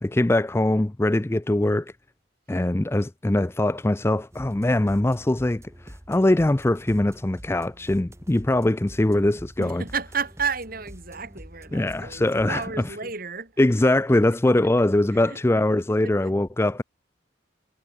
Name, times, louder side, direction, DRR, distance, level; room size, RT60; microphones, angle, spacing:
voice 1, 0.0-1.9 2.5-9.8 11.7-12.9 13.6-16.8, left 1 dB, 15° left, 0.4 m, -22 dB
live techno loop - bass n drum loop, 4.3-12.9, equal, 15° right, 1.9 m, -46 dB
voice 2, 9.6-13.6 15.1-15.6 16.0-16.4, right 5 dB, 50° right, 7.2 m, -32 dB
head